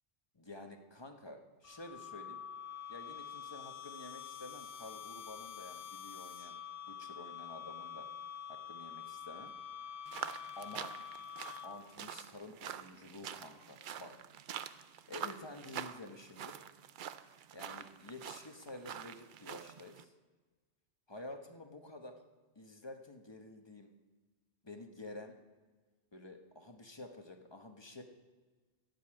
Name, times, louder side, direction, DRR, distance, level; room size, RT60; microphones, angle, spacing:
voice 1, 0.3-2.4 2.9-6.6 6.9-8.1 8.5-9.5 10.6-11.0 11.6-14.2 15.1-16.6 17.5-20.1 21.1-22.2 22.5-23.9 24.6-25.4 26.1-28.0, left 2 dB, 25° left, 4 dB, 1.0 m, -50 dB
sound 1, 1.6-12.0, left 8 dB, 60° left, 0.6 m, -47 dB
sound 2, 10.1-20.0, right 9 dB, 60° right, 0.6 m, -46 dB
13.0 x 5.5 x 8.6 m, 1.4 s
omnidirectional pair, 1.2 m